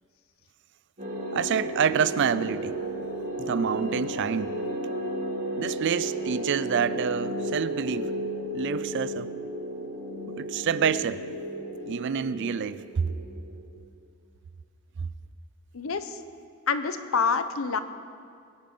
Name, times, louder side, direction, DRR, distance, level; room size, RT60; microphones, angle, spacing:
sound 1, 1.0-13.8, right 1 dB, 40° right, 3.8 m, -33 dB
voice 1, 1.3-2.8 3.4-4.5 5.6-8.1 8.5-9.3 10.4-11.2 11.9-13.1, right 7 dB, 60° right, 16 dB, 0.4 m, -27 dB
voice 2, 15.7-16.2 16.7-17.8, left 5 dB, 75° left, 11 dB, 0.8 m, -27 dB
22.5 x 10.5 x 3.8 m, 2.3 s
head